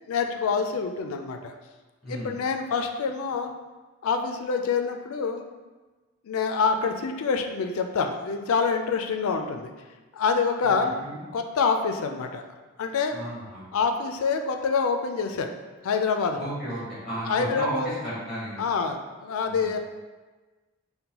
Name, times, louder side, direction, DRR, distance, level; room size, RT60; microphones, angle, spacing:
voice 1, 0.1-1.5 2.1-3.5 4.0-5.5 6.2-9.7 10.1-10.9 11.3-12.4 12.8-13.3 13.7-15.5 15.8-16.5 17.2-17.9 18.6-19.8, left 5 dB, 70° left, 5 dB, 0.3 m, -26 dB
voice 2, 13.1-13.7 16.4-18.6 19.5-19.7, right 1 dB, ahead, -8 dB, 0.9 m, -33 dB
5.3 x 2.2 x 2.9 m, 1.3 s
head